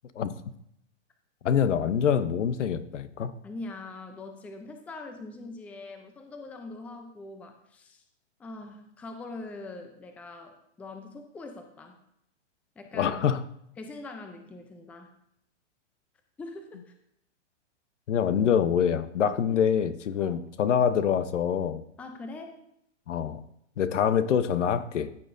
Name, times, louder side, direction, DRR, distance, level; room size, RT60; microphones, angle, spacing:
voice 1, 1.4-3.3 12.9-13.4 18.1-21.8 23.1-23.4 23.8-25.1, left 8 dB, 85° left, 13 dB, 0.8 m, -25 dB
voice 2, 3.4-8.0 8.4-12.0 12.8-13.2 13.8-15.1 16.4-16.9 19.5-19.6 20.2-20.4 22.0-22.6, left 3 dB, 5° left, 5 dB, 0.4 m, -42 dB
14.0 x 6.6 x 2.6 m, 0.74 s
hypercardioid pair, 135°, 36 cm